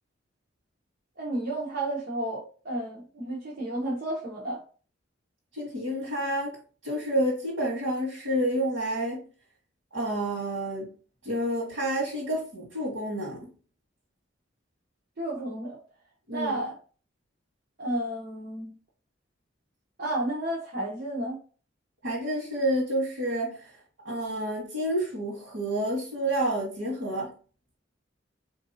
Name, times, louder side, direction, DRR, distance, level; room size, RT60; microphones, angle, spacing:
voice 1, 1.2-4.6 15.2-15.8 16.3-16.7 17.8-18.7 20.0-21.4, right 1 dB, 50° right, 0.9 m, -32 dB
voice 2, 5.5-6.6 6.8-9.2 9.9-10.9 11.2-13.5 16.3-16.5 22.0-23.7 24.0-27.3, right 1 dB, 80° right, 1.2 m, -29 dB
3.7 x 2.6 x 2.6 m
head